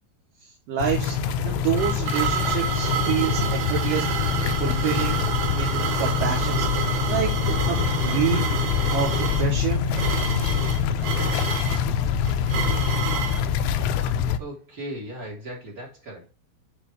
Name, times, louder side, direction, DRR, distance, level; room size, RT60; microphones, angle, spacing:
voice 1, 0.7-4.1 4.6-5.2 5.6-9.8, right 7 dB, 60° right, 2.7 m, -28 dB
sound 1, 0.8-14.4, left 7 dB, 85° left, 2.7 m, -25 dB
sound 2, 1.3-13.5, right 7 dB, 90° right, 1.7 m, -29 dB
voice 2, 14.4-16.3, right 1 dB, 30° right, 1.8 m, -37 dB
8.7 x 3.6 x 4.7 m
omnidirectional pair, 5.3 m